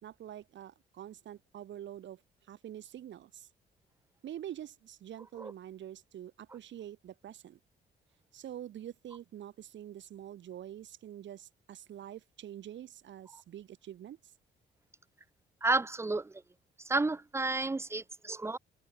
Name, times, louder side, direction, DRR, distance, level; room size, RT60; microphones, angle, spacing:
voice 1, 0.0-2.2 2.5-3.5 4.2-7.6 8.3-14.2, right 11 dB, 70° right, 2.0 m, -46 dB
voice 2, 15.6-16.3 16.9-18.6, right 3 dB, 15° right, 0.4 m, -31 dB
open air
cardioid pair, 90°, 20 cm